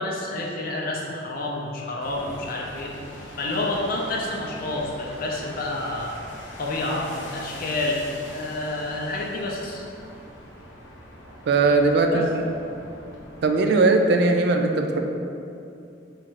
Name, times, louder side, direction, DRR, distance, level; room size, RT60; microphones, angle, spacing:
voice 1, 0.0-2.9 3.4-6.2 6.6-8.0 8.3-9.8 12.1-12.2, left 2 dB, 50° left, -2 dB, 0.5 m, -29 dB
sound 1, 2.0-13.5, equal, 85° left, 0.9 m, -42 dB
voice 2, 11.5-12.4 13.4-15.0, right 3 dB, 60° right, 4 dB, 0.3 m, -19 dB
4.3 x 2.5 x 4.5 m, 2.7 s
head